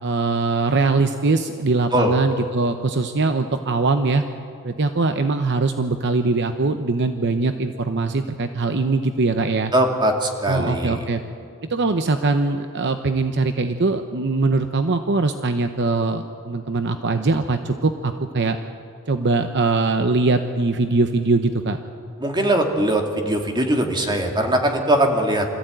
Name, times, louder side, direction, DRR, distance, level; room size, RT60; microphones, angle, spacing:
voice 1, 0.0-4.2 4.6-9.7 10.5-11.2 11.7-18.6 19.1-21.8, right 3 dB, 55° right, 7 dB, 0.8 m, -21 dB
voice 2, 9.7-11.0 22.2-25.5, right 1 dB, 20° right, 2 dB, 2.3 m, -20 dB
25.0 x 14.5 x 9.1 m, 2.4 s
head